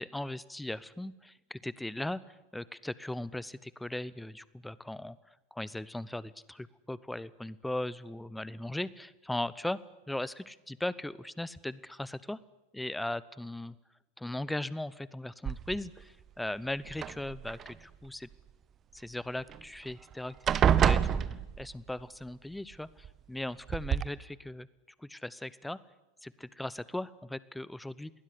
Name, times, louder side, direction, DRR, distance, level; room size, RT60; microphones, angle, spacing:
voice 1, 0.0-5.2 5.5-9.8 10.1-12.4 12.7-13.8 14.2-18.3 18.9-21.2 21.6-24.7 25.0-25.8 26.2-28.1, left 1 dB, 5° left, 20 dB, 0.8 m, -38 dB
sound 1, 15.5-16.0 16.9-17.7 19.5-19.6 19.9-20.1 20.5-21.9 23.0-23.1 23.7-24.0, right 9 dB, 25° right, 1.1 m, -27 dB
27.5 x 20.5 x 9.9 m, 1.1 s
figure-of-eight pair, 90°, 0 cm